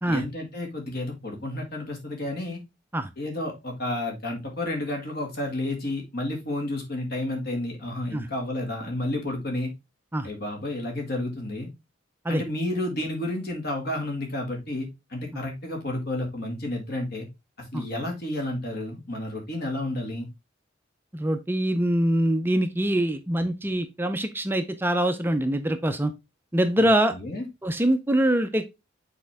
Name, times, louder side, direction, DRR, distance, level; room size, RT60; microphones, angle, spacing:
voice 1, 0.1-2.6 3.2-9.7 10.2-11.7 12.3-17.3 17.7-20.3 26.8-27.5, left 1 dB, 55° left, 2.1 m, -31 dB
voice 2, 21.1-26.1 26.5-27.1 27.6-28.6, right 1 dB, 10° right, 0.5 m, -24 dB
6.5 x 4.4 x 3.5 m
head